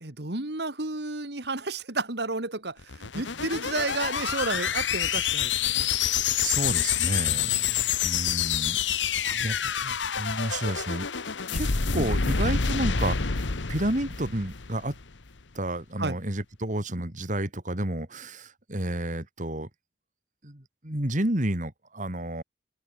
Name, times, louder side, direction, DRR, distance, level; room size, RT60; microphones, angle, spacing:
voice 1, 0.0-5.9 7.3-7.6 9.2-9.6 9.8-9.9 12.5-12.6 16.0-16.1, right 3 dB, 65° right, 2.4 m, -32 dB
sound 1, 2.8-15.1, left 7 dB, 90° left, 1.3 m, -27 dB
voice 2, 5.7-7.5 8.0-9.6 10.1-11.1 11.5-15.0 15.5-19.7 20.4-22.4, right 1 dB, 45° right, 3.1 m, -31 dB
head